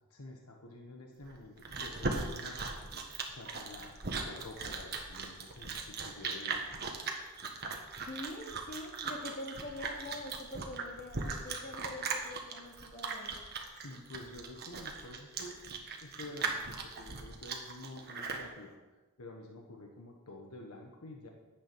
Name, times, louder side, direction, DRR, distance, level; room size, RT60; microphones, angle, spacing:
voice 1, 0.0-2.9 3.3-4.0 4.2-6.8 13.8-15.6 16.0-18.8 19.2-21.3, left 2 dB, 80° left, 2 dB, 1.3 m, -49 dB
Chewing mastication, 1.2-18.5, right 4 dB, 45° right, 1.5 m, -38 dB
voice 2, 8.1-13.4, left 1 dB, 45° left, 0 dB, 2.4 m, -44 dB
10.5 x 8.4 x 6.2 m, 1.2 s
head